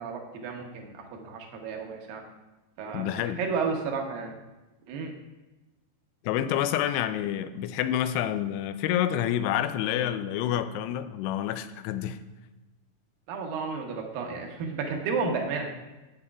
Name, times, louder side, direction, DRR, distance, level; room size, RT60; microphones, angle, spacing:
voice 1, 0.0-2.2 2.8-3.0 3.4-4.3 4.9-5.1 13.3-15.7, right 5 dB, 70° right, 2 dB, 2.5 m, -32 dB
voice 2, 2.9-3.4 6.2-12.2, left 11 dB, 90° left, 11 dB, 2.6 m, -28 dB
13.5 x 8.6 x 2.3 m, 1.1 s
omnidirectional pair, 4.7 m